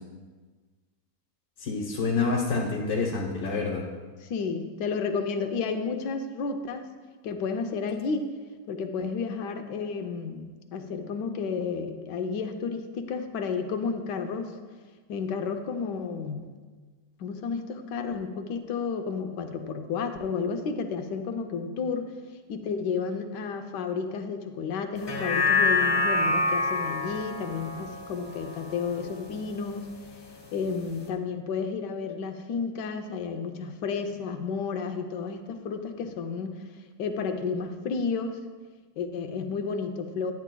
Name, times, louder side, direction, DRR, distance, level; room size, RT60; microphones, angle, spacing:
voice 1, 1.6-3.8, left 4 dB, 70° left, -4 dB, 1.4 m, -27 dB
voice 2, 4.2-6.9 7.2-8.3 8.7-14.5 15.1-16.5 17.2-22.1 22.5-29.9 30.5-36.7 37.0-38.4 39.0-40.3, left 5 dB, 90° left, 6 dB, 1.3 m, -31 dB
sound 1, 25.0-29.5 29.9-30.0, left 3 dB, 25° left, 0.5 m, -27 dB
9.9 x 9.5 x 2.2 m, 1.4 s
omnidirectional pair, 1.8 m